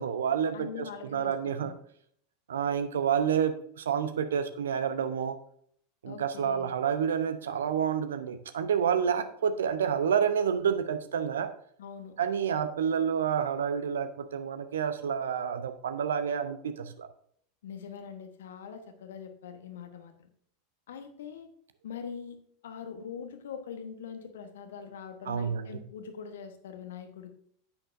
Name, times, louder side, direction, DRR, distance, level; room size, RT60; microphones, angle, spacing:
voice 1, 0.0-0.9 1.1-1.7 2.5-5.4 6.0-11.5 12.2-17.1 25.3-25.8, right 7 dB, 70° right, 11 dB, 0.7 m, -29 dB
voice 2, 0.5-1.7 6.0-6.7 11.8-12.1 17.6-20.3 20.9-21.5 21.8-22.4 22.6-27.3, left 7 dB, 65° left, 8 dB, 1.1 m, -43 dB
9.7 x 8.7 x 2.6 m, 0.64 s
figure-of-eight pair, 85°, 0 cm